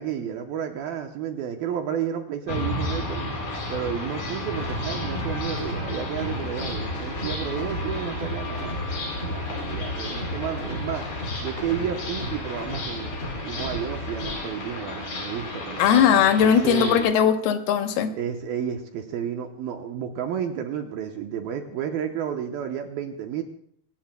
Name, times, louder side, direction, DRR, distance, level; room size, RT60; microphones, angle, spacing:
voice 1, 0.0-3.2 3.7-8.8 9.2-11.0 11.4-13.1 13.4-15.8 16.4-17.1 18.2-23.4, right 9 dB, 75° right, 4 dB, 2.4 m, -31 dB
sound 1, 2.5-17.0, left 2 dB, 55° left, 5.7 m, -33 dB
sound 2, 4.6-14.4, left 1 dB, 30° left, 1.7 m, -34 dB
voice 2, 15.8-18.1, left 8 dB, 75° left, 7 dB, 2.8 m, -19 dB
24.5 x 18.0 x 2.2 m, 0.62 s
omnidirectional pair, 4.9 m